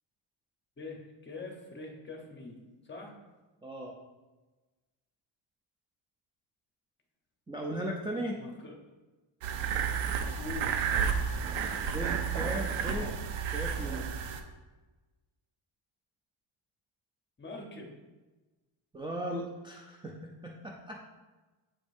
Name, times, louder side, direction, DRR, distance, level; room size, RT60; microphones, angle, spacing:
voice 1, 0.8-2.6 2.8-3.1 8.4-8.8 10.4-10.8 17.4-17.9, left 2 dB, 25° left, 1 dB, 0.9 m, -43 dB
voice 2, 3.6-3.9 7.5-8.4 11.9-13.1 13.5-14.0 18.9-21.0, right 1 dB, 10° right, -1 dB, 0.4 m, -37 dB
sound 1, 9.4-14.4, right 6 dB, 75° right, 0.7 m, -31 dB
7.2 x 5.0 x 2.6 m, 1.2 s
cardioid pair, 130°, 47 cm